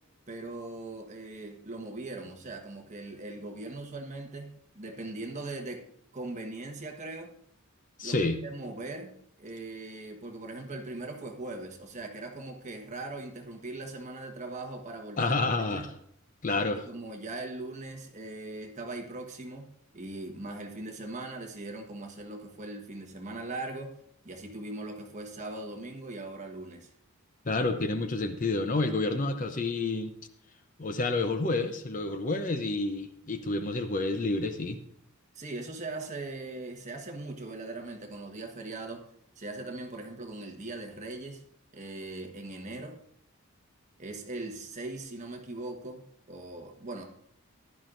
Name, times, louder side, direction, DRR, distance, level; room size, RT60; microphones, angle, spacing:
voice 1, 0.3-5.8 6.1-7.3 8.0-15.4 15.7-15.9 16.5-24.0 24.2-26.9 35.3-39.0 39.4-41.4 41.7-43.0 44.0-47.0, right 2 dB, 35° right, 3 dB, 1.2 m, -40 dB
voice 2, 8.0-8.4 15.2-15.9 16.4-16.8 27.5-30.1 30.8-34.8, left 2 dB, 35° left, 8 dB, 0.7 m, -29 dB
15.0 x 11.0 x 2.6 m, 0.68 s
head